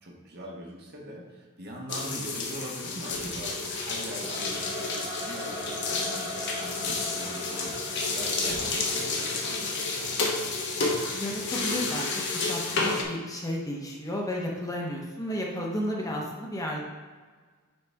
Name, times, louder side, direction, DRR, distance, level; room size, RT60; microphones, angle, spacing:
voice 1, 0.0-10.0, equal, 50° right, -2 dB, 1.4 m, -42 dB
sound 1, 1.9-13.0, left 3 dB, 55° left, 1.1 m, -30 dB
Singing / Musical instrument, 4.1-11.2, left 1 dB, 20° right, 1.4 m, -41 dB
voice 2, 11.1-16.8, equal, 15° left, -1 dB, 1.0 m, -33 dB
9.8 x 4.1 x 3.5 m, 1.5 s
head